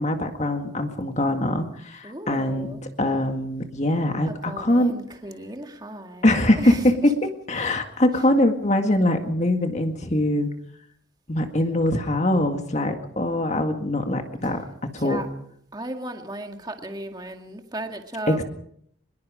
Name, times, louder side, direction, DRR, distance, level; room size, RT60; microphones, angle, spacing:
voice 1, 0.0-4.9 6.2-10.5 11.3-15.2 18.3-18.4, left 1 dB, 35° left, 5 dB, 1.9 m, -23 dB
voice 2, 2.0-2.8 4.3-6.8 15.0-15.3 15.7-18.4, right 1 dB, 20° right, 4 dB, 2.0 m, -35 dB
23.5 x 21.5 x 5.1 m, 0.67 s
head